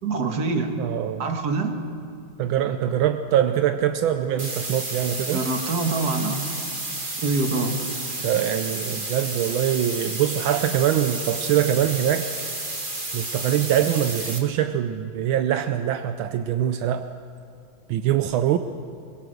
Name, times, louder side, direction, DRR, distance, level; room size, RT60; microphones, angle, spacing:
voice 1, 0.0-0.9 1.2-1.7 5.3-6.5 7.2-7.8, right 3 dB, 55° right, 5 dB, 2.1 m, -25 dB
voice 2, 0.8-1.3 2.4-5.4 8.2-12.3 13.1-17.1 17.9-18.6, right 10 dB, 80° right, 9 dB, 1.5 m, -23 dB
sound 1, 4.4-14.4, right 2 dB, 25° right, 2.1 m, -31 dB
22.5 x 22.0 x 6.4 m, 2.3 s
omnidirectional pair, 2.2 m